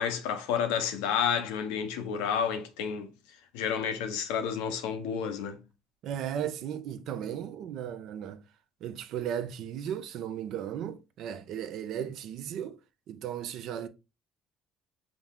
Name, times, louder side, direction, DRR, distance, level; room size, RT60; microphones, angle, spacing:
voice 1, 0.0-3.1 3.5-5.6, left 7 dB, 90° left, 0.8 m, -30 dB
voice 2, 6.0-8.4 8.8-12.8 13.1-13.9, right 9 dB, 65° right, 0.6 m, -36 dB
6.0 x 2.1 x 3.6 m
supercardioid pair, 85°, 0 cm